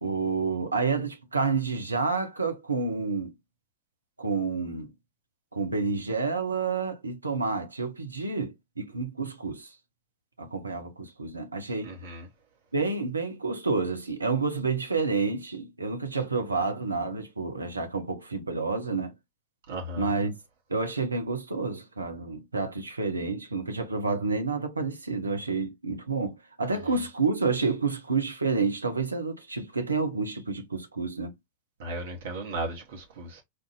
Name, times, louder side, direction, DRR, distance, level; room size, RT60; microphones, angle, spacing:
voice 1, 0.0-3.3 4.2-4.9 5.5-9.7 10.4-11.9 12.7-19.1 20.0-20.4 20.7-31.3, right 4 dB, 80° right, 0.7 m, -29 dB
voice 2, 11.8-12.2 19.7-20.1 31.8-33.4, right 2 dB, 60° right, 1.0 m, -35 dB
4.4 x 2.5 x 2.4 m
figure-of-eight pair, 90°, 0 cm